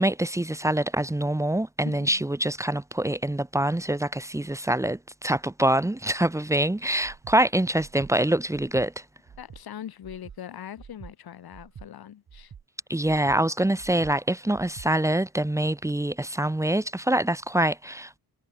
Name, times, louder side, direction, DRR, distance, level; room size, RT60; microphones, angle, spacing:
voice 1, 0.0-9.0 12.9-18.2, right 1 dB, 10° right, 1.7 m, -25 dB
voice 2, 1.8-2.3 9.4-12.5, left 10 dB, 85° left, 7.8 m, -41 dB
Breathing, 7.0-7.4 7.8-8.1 8.5-8.9 9.3-9.6 10.0-10.4 10.8-11.1 11.5-11.9 12.3-12.6 13.0-13.4 13.8-14.1 14.5-14.9, right 7 dB, 45° right, 4.4 m, -46 dB
wide cardioid pair, 180°, 36 cm